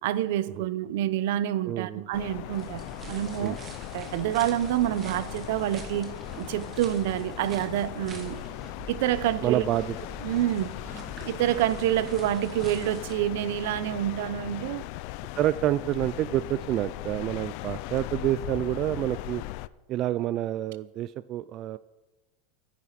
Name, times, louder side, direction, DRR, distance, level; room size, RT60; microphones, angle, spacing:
voice 1, 0.0-3.6 3.9-8.4 8.9-9.6 10.2-10.7 11.3-14.8, right 12 dB, 70° right, 0.7 m, -27 dB
voice 2, 1.6-2.1 3.4-3.6 9.4-10.0 15.4-19.4 19.9-21.8, right 13 dB, 35° right, 0.3 m, -28 dB
sound 1, 2.1-19.7, left 17 dB, 55° left, 0.4 m, -39 dB
sound 2, 2.5-13.1, right 5 dB, 20° right, 1.7 m, -45 dB
13.0 x 9.6 x 5.8 m
supercardioid pair, 155°, 0 cm